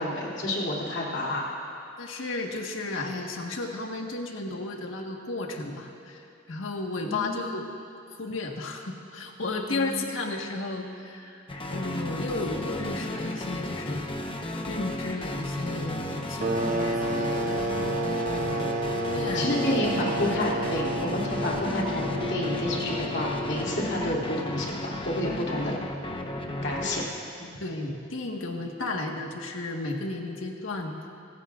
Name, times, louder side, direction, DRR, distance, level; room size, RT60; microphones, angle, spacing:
voice 1, 0.0-1.6 7.0-7.4 9.6-10.0 17.6-17.9 19.3-25.8 26.6-27.0 27.4-27.5, left 1 dB, 60° left, -4 dB, 2.8 m, -30 dB
voice 2, 2.0-7.7 8.2-14.0 14.7-17.8 18.2-18.7 19.0-20.1 27.6-30.9, left 2 dB, 75° left, 1 dB, 1.5 m, -33 dB
sound 1, 11.5-27.0, left 1 dB, 25° left, 0.9 m, -34 dB
sound 2, 16.4-24.8, right 1 dB, 45° right, 0.9 m, -31 dB
25.5 x 15.0 x 2.5 m, 2.8 s
head